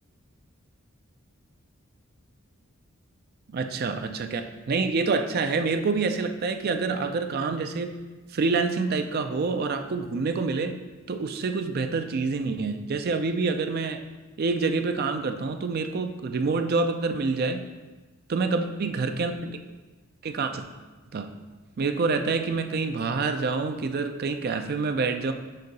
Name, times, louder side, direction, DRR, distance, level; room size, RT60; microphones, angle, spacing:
voice 1, 3.5-4.4 4.7-7.9 8.3-10.8 11.1-14.0 14.4-17.6 18.3-19.6 20.2-20.7 21.1-21.3 21.8-25.3, right 4 dB, 45° right, 7 dB, 0.4 m, -27 dB
6.5 x 2.7 x 5.3 m, 1.2 s
head